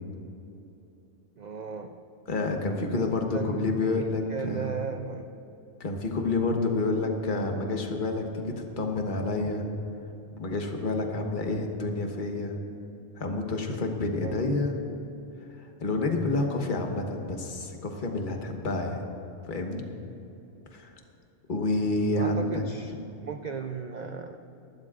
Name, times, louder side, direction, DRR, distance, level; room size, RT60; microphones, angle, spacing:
voice 1, 1.4-1.9 2.9-3.1 3.3-5.3 14.2-14.4 22.2-22.9 23.2-24.4, right 5 dB, 55° right, 6 dB, 0.5 m, -36 dB
voice 2, 2.3-4.7 5.8-9.7 10.4-12.6 13.2-14.7 15.8-19.0 19.4-19.8 20.7-20.9 21.5-22.6, left 2 dB, 40° left, 2 dB, 1.3 m, -29 dB
23.0 x 12.5 x 2.5 m, 2.9 s
omnidirectional pair, 1.3 m